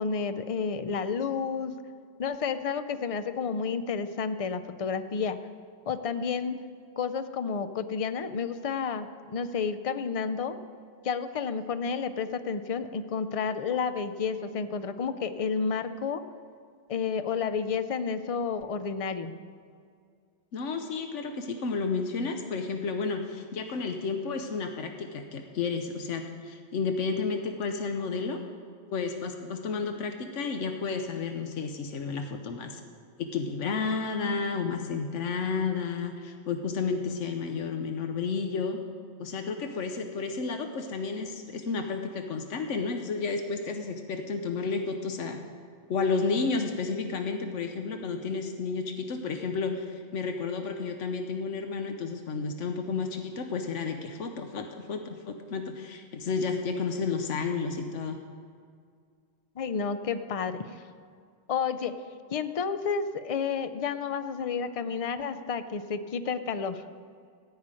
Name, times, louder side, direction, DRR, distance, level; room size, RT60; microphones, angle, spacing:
voice 1, 0.0-1.8 2.2-5.4 5.9-6.6 7.0-10.6 11.0-16.2 16.9-19.3 59.6-60.6 61.5-61.9 62.3-66.8, left 5 dB, 45° left, 10 dB, 0.5 m, -31 dB
voice 2, 20.5-28.4 28.9-32.8 33.2-38.8 39.2-45.4 45.9-58.2, left 4 dB, 90° left, 5 dB, 1.2 m, -31 dB
14.0 x 5.8 x 8.9 m, 2.2 s
omnidirectional pair, 1.2 m